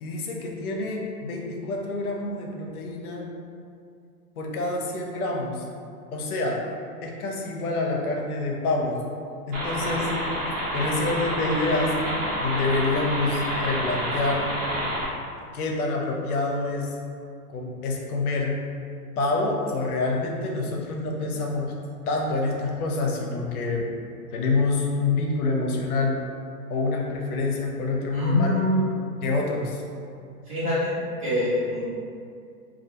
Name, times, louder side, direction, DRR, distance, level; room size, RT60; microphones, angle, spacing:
voice 1, 0.0-3.3 4.4-5.6 6.1-6.6 7.0-9.0 9.5-10.1 10.7-11.9 12.4-14.5 15.5-16.9 17.5-18.5 19.2-21.7 22.1-23.9 24.3-26.2 26.7-28.5 29.2-29.8, left 3 dB, 70° left, 0 dB, 0.6 m, -27 dB
sound 1, 9.5-15.1, equal, 55° right, 1.0 m, -28 dB
voice 2, 28.1-28.8 30.5-31.9, equal, 25° right, -10 dB, 0.4 m, -25 dB
2.3 x 2.2 x 2.8 m, 2.4 s
hypercardioid pair, 140°, 45 cm